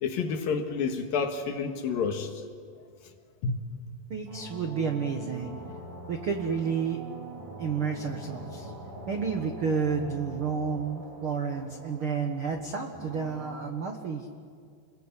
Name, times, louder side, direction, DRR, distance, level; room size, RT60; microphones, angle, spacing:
voice 1, 0.0-2.3 3.4-3.8, left 5 dB, 65° left, 3.1 m, -29 dB
voice 2, 4.1-5.6 6.1-7.0 7.6-8.7 9.1-14.3, right 6 dB, 80° right, 1.2 m, -31 dB
sound 1, 4.3-13.6, right 2 dB, 55° right, 5.5 m, -43 dB
29.5 x 21.5 x 8.3 m
omnidirectional pair, 4.9 m